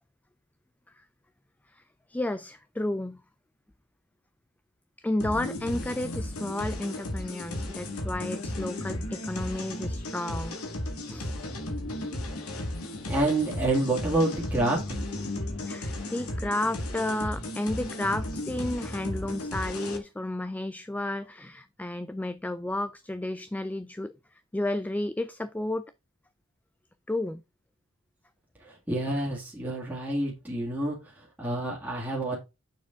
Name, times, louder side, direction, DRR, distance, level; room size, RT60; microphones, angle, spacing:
voice 1, 2.1-3.2 5.0-10.6 11.0-11.4 15.6-25.9 27.1-27.4, left 1 dB, 5° left, 0.3 m, -32 dB
sound 1, 5.2-20.0, left 1 dB, 85° left, 2.0 m, -35 dB
voice 2, 13.1-15.0 28.6-32.4, right 2 dB, 10° right, 2.0 m, -28 dB
6.7 x 4.9 x 3.7 m
head